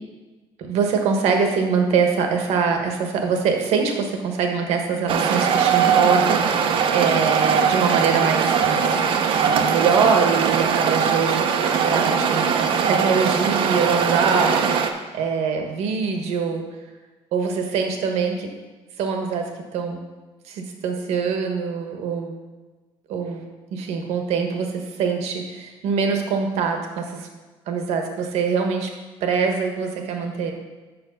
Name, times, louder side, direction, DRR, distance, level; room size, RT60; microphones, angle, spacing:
voice 1, 0.6-8.9 9.4-11.4 11.8-14.8 15.1-16.6 17.3-18.5 19.0-20.0 20.4-22.4 23.1-23.4 23.7-27.3 27.7-28.9 29.2-30.5, right 5 dB, 75° right, 3 dB, 1.4 m, -23 dB
sound 1, 5.1-14.9, right 6 dB, 50° right, 0.7 m, -20 dB
7.2 x 6.2 x 5.7 m, 1.3 s
cardioid pair, 160°, 11 cm